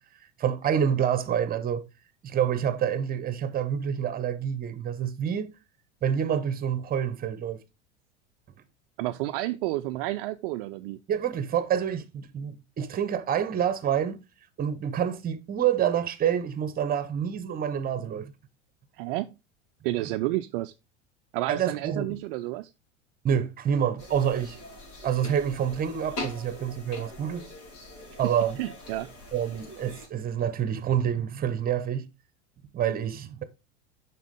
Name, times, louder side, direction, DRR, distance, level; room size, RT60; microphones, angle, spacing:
voice 1, 0.4-1.9 2.2-5.6 6.0-7.6 11.1-14.2 14.6-18.3 21.5-22.2 23.2-24.6 25.0-27.5 28.2-28.6 29.3-32.1 32.7-33.4, right 8 dB, 25° right, 0.9 m, -27 dB
voice 2, 9.0-11.0 19.0-19.4 19.8-20.7 21.3-22.7 28.6-29.1, right 17 dB, 50° right, 0.5 m, -30 dB
sound 1, 24.0-30.1, left 2 dB, 65° left, 4.9 m, -42 dB
7.3 x 5.9 x 3.6 m
figure-of-eight pair, 85°, 36 cm